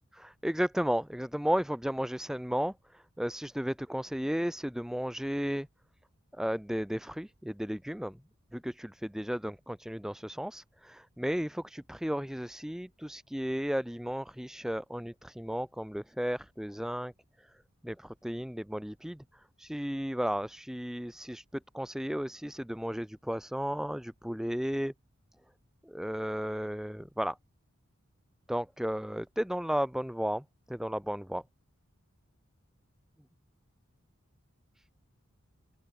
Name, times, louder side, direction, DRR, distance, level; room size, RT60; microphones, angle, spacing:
voice 1, 0.2-2.7 3.2-5.7 6.4-8.2 8.5-17.1 17.8-19.2 19.6-21.4 21.7-24.9 25.9-27.4 28.5-30.4 30.7-31.4, equal, ahead, 0.4 m, -34 dB
open air
head